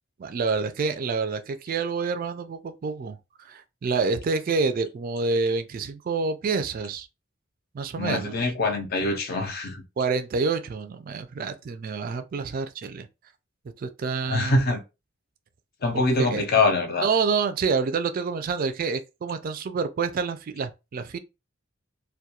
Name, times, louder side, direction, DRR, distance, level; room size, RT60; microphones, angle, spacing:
voice 1, 0.2-7.1 7.7-8.5 10.0-13.1 13.8-14.6 15.9-16.5 17.0-21.2, right 4 dB, 45° right, 0.3 m, -28 dB
voice 2, 8.0-9.8 14.2-14.8 15.8-17.1, left 3 dB, 45° left, 0.6 m, -24 dB
2.3 x 2.2 x 2.8 m
head